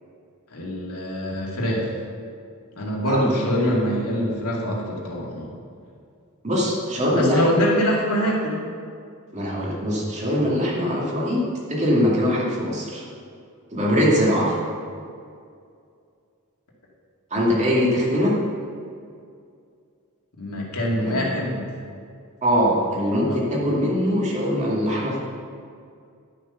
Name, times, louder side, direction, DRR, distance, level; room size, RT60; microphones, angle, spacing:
voice 1, 0.5-1.9 2.8-5.5 7.1-8.6 20.4-21.7 23.2-23.4, equal, 80° left, -4 dB, 2.4 m, -24 dB
voice 2, 3.1-3.6 6.4-7.6 9.3-13.0 13.7-14.6 17.3-18.3 21.0-21.2 22.4-25.2, equal, 30° right, -5 dB, 2.4 m, -22 dB
11.5 x 6.4 x 5.7 m, 2.3 s
head